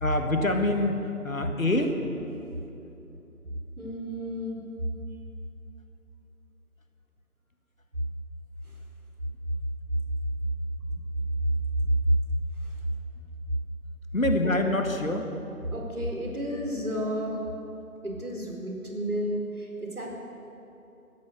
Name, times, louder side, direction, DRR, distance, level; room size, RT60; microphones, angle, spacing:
voice 1, 0.0-2.0 14.1-15.3, left 1 dB, 60° left, 5 dB, 1.7 m, -26 dB
voice 2, 3.8-4.6 8.6-8.7 11.8-12.1 12.6-12.8 14.4-14.5 15.7-17.4 18.0-20.1, equal, 75° right, -1 dB, 4.5 m, -31 dB
15.5 x 13.0 x 6.6 m, 2.9 s
figure-of-eight pair, 160°, 45 cm